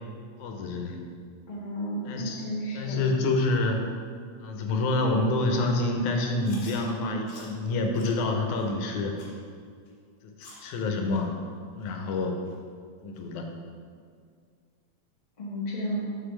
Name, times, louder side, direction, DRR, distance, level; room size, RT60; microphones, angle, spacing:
voice 1, 0.4-1.0 2.1-2.4 2.7-3.8 4.4-9.2 10.2-10.3 10.6-11.4 11.7-12.3 13.0-13.5, left 2 dB, 80° left, 3 dB, 2.1 m, -27 dB
voice 2, 1.5-3.1 15.4-16.1, equal, 35° left, -6 dB, 0.7 m, -33 dB
Chewing mastication, 6.4-6.8 7.3-7.5 7.9-8.1 8.5-8.7 9.2-9.4 9.9-10.0 10.4-10.7 11.1-11.2 11.8-11.9 12.5-12.6 13.1-13.2, left 2 dB, 55° left, 1.5 m, -48 dB
6.8 x 6.7 x 3.2 m, 2.1 s
omnidirectional pair, 3.4 m